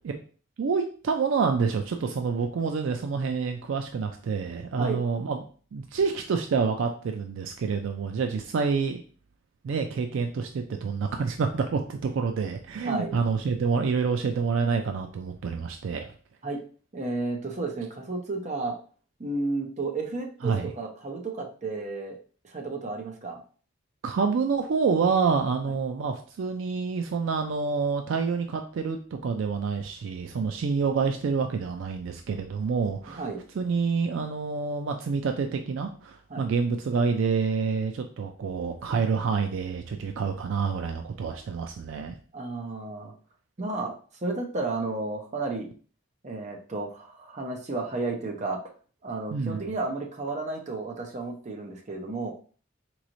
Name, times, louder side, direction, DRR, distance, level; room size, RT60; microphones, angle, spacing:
voice 1, 0.6-5.4 5.7-9.0 9.6-16.1 20.4-20.7 24.0-33.3 33.6-42.2 49.3-49.6, right 5 dB, 65° right, 5 dB, 0.4 m, -27 dB
voice 2, 16.9-18.8 19.2-22.2 22.4-23.4 25.6-25.7 33.1-33.4 36.3-36.5 42.3-43.1 43.6-43.9 44.2-45.7 46.2-48.6 49.0-52.3, right 3 dB, 35° right, 2 dB, 0.7 m, -32 dB
4.0 x 3.1 x 2.6 m, 0.40 s
head